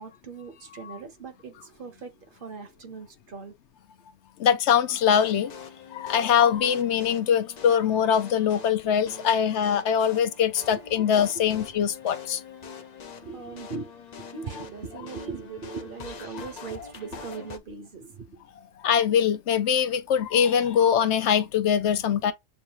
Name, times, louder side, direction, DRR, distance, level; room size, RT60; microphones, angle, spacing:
voice 1, 0.0-3.5 10.7-11.1 11.3-11.6 12.6-12.7 13.2-13.9 14.2-18.4, right 5 dB, 50° right, 0.9 m, -40 dB
voice 2, 4.4-5.5 5.9-12.4 18.8-22.3, left 8 dB, 75° left, 0.9 m, -23 dB
sound 1, 4.9-17.6, left 5 dB, 45° left, 0.6 m, -44 dB
7.0 x 2.4 x 2.8 m
omnidirectional pair, 1.2 m